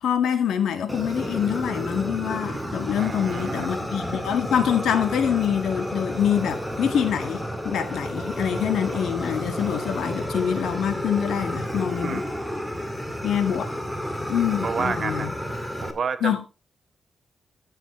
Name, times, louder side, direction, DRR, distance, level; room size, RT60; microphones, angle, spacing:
voice 1, 0.0-12.2 13.2-13.7 14.3-15.3 16.2-16.5, left 9 dB, 85° left, 1.7 m, -25 dB
Fire, 0.9-15.9, equal, 5° left, 2.1 m, -31 dB
voice 2, 3.0-3.7 12.0-12.3 14.6-15.3 15.8-16.5, right 5 dB, 50° right, 1.2 m, -30 dB
14.0 x 7.6 x 3.1 m
cardioid pair, 95°, 0 cm